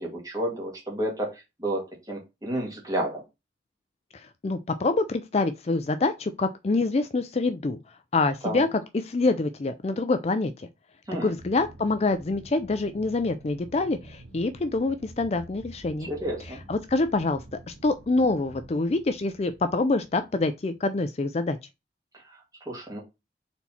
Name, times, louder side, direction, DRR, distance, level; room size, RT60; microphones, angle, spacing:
voice 1, 0.0-3.2 8.4-8.7 11.1-11.3 16.0-16.6 22.1-23.0, right 1 dB, 20° right, 2.2 m, -31 dB
voice 2, 4.4-7.8 8.1-8.7 9.0-10.7 11.2-16.1 16.7-21.6, left 3 dB, 35° left, 0.4 m, -26 dB
Aircraft, 11.3-20.7, right 1 dB, 70° right, 1.6 m, -48 dB
4.4 x 4.1 x 5.7 m
head